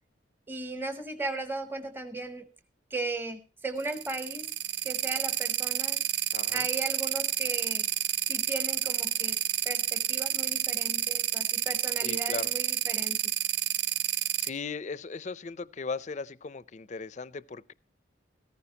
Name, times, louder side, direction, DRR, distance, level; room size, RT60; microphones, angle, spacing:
voice 1, 0.5-2.5 2.9-4.5 4.8-6.0 6.5-7.9 8.3-9.4 9.6-13.2, right 3 dB, 10° right, 0.8 m, -36 dB
sound 1, 3.8-14.5, right 11 dB, 65° right, 0.7 m, -29 dB
voice 2, 6.3-6.7 12.0-12.5 14.4-17.7, left 4 dB, 40° left, 0.5 m, -37 dB
15.0 x 14.0 x 2.8 m
head